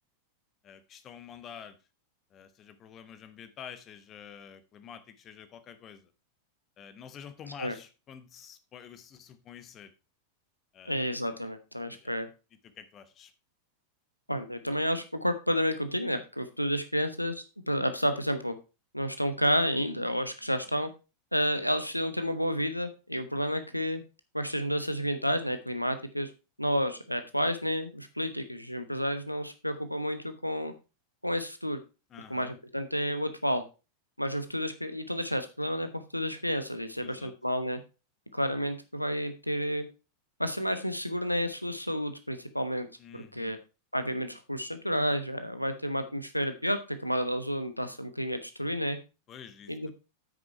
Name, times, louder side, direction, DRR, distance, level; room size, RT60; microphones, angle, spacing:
voice 1, 0.6-1.8 2.3-6.1 6.8-9.9 10.7-11.1 11.9-12.1 12.6-13.3 32.1-32.5 37.0-37.3 43.0-43.6 49.3-49.7, left 8 dB, 30° left, 12 dB, 1.1 m, -48 dB
voice 2, 10.9-12.3 14.3-18.5 18.9-20.9 21.3-24.0 24.3-26.3 26.6-30.7 31.2-31.8 32.3-33.6 34.2-37.8 38.3-39.8 40.4-42.9 43.1-43.6 43.9-49.0 49.7-49.9, equal, 90° left, 10 dB, 0.9 m, -30 dB
9.2 x 6.2 x 4.5 m, 0.30 s
figure-of-eight pair, 90°, 0 cm